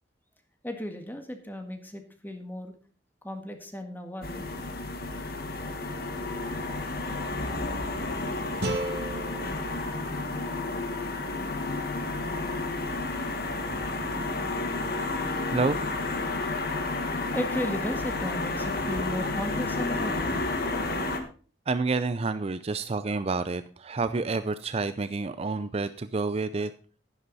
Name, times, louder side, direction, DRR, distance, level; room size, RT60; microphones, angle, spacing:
voice 1, 0.6-2.7 3.2-4.6 17.1-20.4, equal, 10° left, 6 dB, 1.7 m, -35 dB
sound 1, 4.2-21.2, left 2 dB, 55° left, 1.7 m, -31 dB
sound 2, 8.6-11.7, right 2 dB, 60° right, 1.9 m, -36 dB
voice 2, 21.7-26.7, right 3 dB, 35° right, 12 dB, 0.5 m, -29 dB
11.0 x 11.0 x 4.1 m, 0.40 s
head